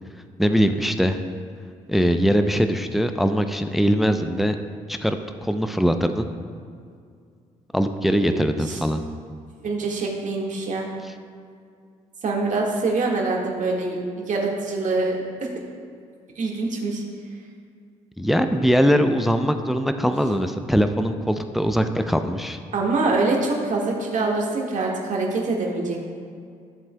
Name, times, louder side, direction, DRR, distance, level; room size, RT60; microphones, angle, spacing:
voice 1, 0.4-1.2 1.9-4.6 4.9-6.3 7.7-9.0 11.0-11.1 18.2-22.6, equal, ahead, 8 dB, 0.6 m, -21 dB
voice 2, 8.3-8.8 9.6-10.9 12.2-15.2 16.4-17.0 22.7-26.0, right 3 dB, 45° right, -1 dB, 1.8 m, -24 dB
14.0 x 7.3 x 2.3 m, 2.3 s
hypercardioid pair, 50°, 17 cm